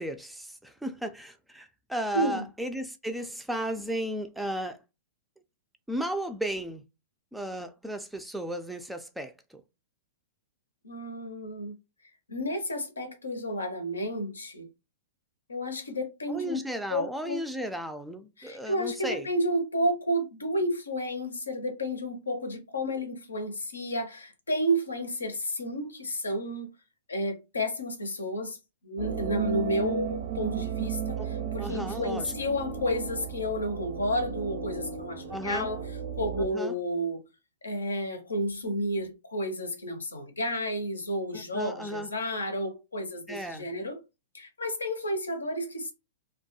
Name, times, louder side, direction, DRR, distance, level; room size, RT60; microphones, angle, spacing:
voice 1, 0.0-4.8 5.9-6.8 7.3-9.4 16.3-19.3 31.2-31.3 31.6-32.3 35.3-35.7 36.5-36.7 41.3-42.1 43.3-43.7, right 1 dB, 5° right, 0.3 m, -34 dB
voice 2, 2.1-2.4 10.8-11.7 12.3-14.6 15.5-16.6 16.9-17.4 18.4-26.7 27.1-28.6 28.8-35.9 36.2-37.3 37.6-44.0 44.3-45.9, equal, 85° left, 0.6 m, -31 dB
sound 1, 29.0-36.5, right 7 dB, 65° right, 0.6 m, -35 dB
2.2 x 2.2 x 2.7 m
hypercardioid pair, 110°, 0 cm